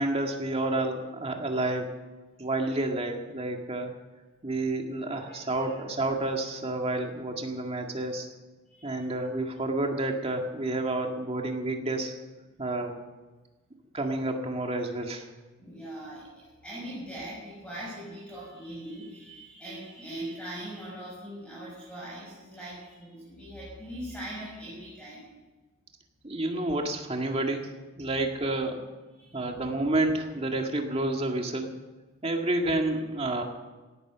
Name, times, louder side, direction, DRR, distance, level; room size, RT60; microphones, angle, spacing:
voice 1, 0.0-1.9 2.4-3.9 4.4-8.3 8.8-12.2 12.6-13.0 13.9-15.3 26.2-27.7 28.0-28.8 29.3-31.8 32.2-33.4, right 2 dB, 30° right, 3 dB, 1.9 m, -29 dB
voice 2, 5.2-5.8 8.6-9.0 15.6-25.3 29.1-29.6, right 1 dB, 5° left, -7 dB, 6.4 m, -41 dB
17.5 x 11.0 x 6.9 m, 1.2 s
head